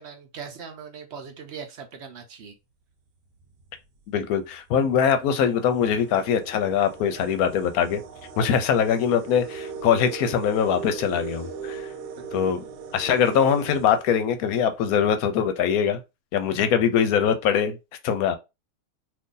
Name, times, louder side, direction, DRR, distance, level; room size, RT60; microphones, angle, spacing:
voice 1, 0.0-2.6 12.2-12.5 16.5-16.6, right 6 dB, 60° right, 0.7 m, -40 dB
sound 1, 3.4-3.7 4.5-4.6 5.0-14.8, right 5 dB, 80° right, 1.2 m, -39 dB
voice 2, 4.1-8.0 8.4-11.8 12.3-12.6 12.9-16.0 16.3-17.8 18.0-18.4, left 8 dB, 70° left, 1.0 m, -22 dB
2.7 x 2.6 x 3.7 m
omnidirectional pair, 1.7 m